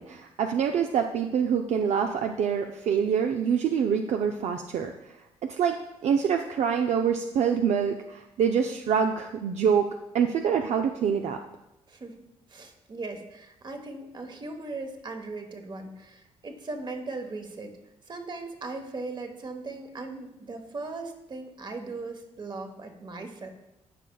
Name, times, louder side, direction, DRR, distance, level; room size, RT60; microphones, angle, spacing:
voice 1, 0.0-4.9 5.5-5.8 6.0-11.4, right 7 dB, 65° right, 5 dB, 0.4 m, -25 dB
voice 2, 11.9-12.2 12.5-17.8 18.0-23.5, right 3 dB, 40° right, 5 dB, 1.1 m, -38 dB
12.5 x 5.0 x 2.3 m, 0.91 s
cardioid pair, 75°, 12 cm